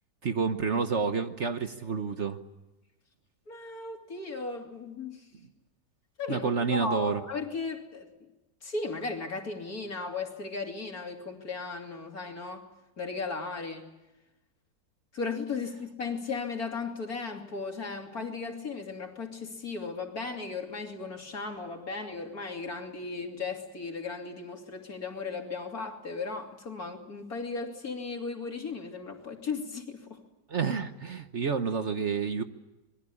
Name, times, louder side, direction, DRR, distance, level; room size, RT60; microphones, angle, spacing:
voice 1, 0.2-2.4 6.3-7.2 30.5-32.4, right 5 dB, 50° right, 8 dB, 1.2 m, -29 dB
voice 2, 3.5-5.3 6.2-8.3 8.6-12.7 13.0-13.9 15.1-30.2, left 4 dB, 60° left, 3 dB, 3.4 m, -36 dB
26.0 x 21.5 x 8.5 m, 1.0 s
omnidirectional pair, 1.8 m